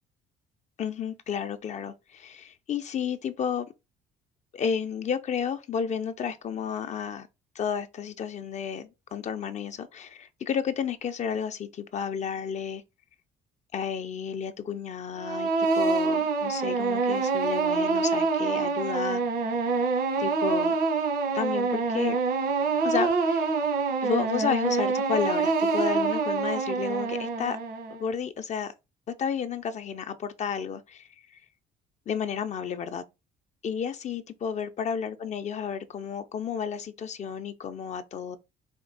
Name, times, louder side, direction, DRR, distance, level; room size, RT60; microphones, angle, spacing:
voice 1, 0.8-3.7 4.5-7.3 7.5-12.8 13.7-19.2 19.6-19.7 20.2-20.8 21.3-22.2 22.8-23.6 24.0-27.6 27.9-28.7 29.1-31.4 32.1-33.0 33.6-38.4, left 7 dB, 45° left, 0.5 m, -32 dB
sound 1, 15.2-28.0, right 4 dB, 70° right, 1.3 m, -26 dB
4.3 x 2.8 x 4.0 m
cardioid pair, 110°, 17 cm